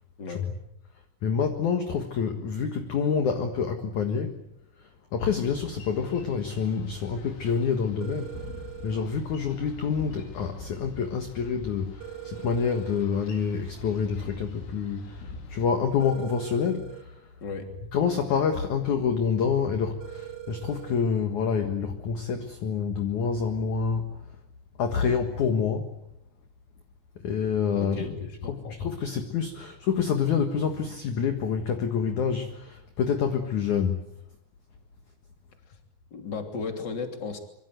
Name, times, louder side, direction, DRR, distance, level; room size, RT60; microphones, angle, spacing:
voice 1, 1.2-4.4 4.8-8.4 8.8-17.3 17.9-24.2 24.8-25.9 27.2-28.2 28.5-34.1, left 6 dB, 60° left, 6 dB, 2.1 m, -27 dB
Boat Water vehicle, 5.5-15.7, left 4 dB, 75° left, 6.0 m, -45 dB
sound 1, 8.0-9.0 12.0-13.0 16.0-17.0 20.0-21.0, right 15 dB, 75° right, 5.0 m, -41 dB
voice 2, 17.4-17.7 27.8-28.7 36.1-37.4, left 4 dB, 25° left, 5 dB, 2.8 m, -35 dB
26.5 x 24.5 x 8.0 m, 0.76 s
omnidirectional pair, 5.7 m